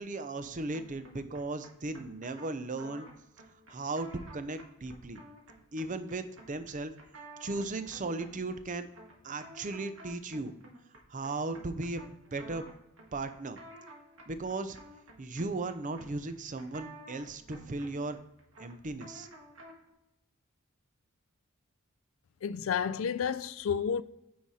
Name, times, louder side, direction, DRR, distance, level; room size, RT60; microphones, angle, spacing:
voice 1, 0.0-3.1 3.7-5.2 5.7-6.9 7.4-8.9 9.2-10.5 11.1-12.6 13.1-13.6 14.3-14.8 15.2-18.2 18.6-19.3, right 2 dB, 35° right, 0.6 m, -36 dB
sound 1, 0.7-19.9, right 1 dB, 65° right, 1.8 m, -53 dB
voice 2, 22.4-24.0, left 7 dB, 65° left, 0.4 m, -31 dB
9.3 x 4.7 x 4.2 m
head